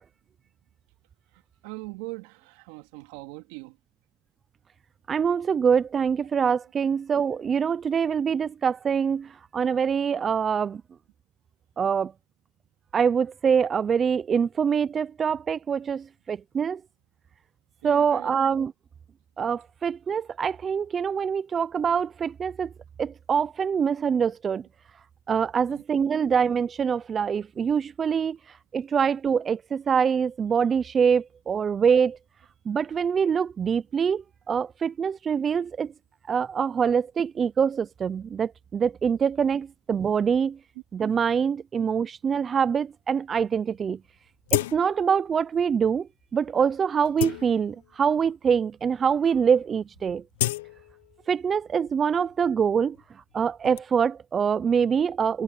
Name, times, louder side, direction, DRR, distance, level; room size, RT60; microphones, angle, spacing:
voice 1, 1.3-3.8 17.8-18.3 25.7-25.8, right 25 dB, 55° right, 2.8 m, -41 dB
voice 2, 5.1-10.8 11.8-12.1 12.9-16.8 17.8-18.7 19.4-22.7 23.0-24.7 25.3-28.4 28.7-32.2 32.7-35.9 36.3-40.6 40.9-44.0 44.5-46.1 46.3-50.2 51.3-53.0 53.3-55.4, right 7 dB, 20° right, 0.6 m, -24 dB
sound 1, 43.7-43.8 44.5-45.2 45.6-45.7 46.3-46.5 46.9-48.0 48.7-48.8 49.1-49.4 49.7-51.5 51.9-53.8, left 16 dB, 70° left, 0.9 m, -33 dB
supercardioid pair, 130°, 0 cm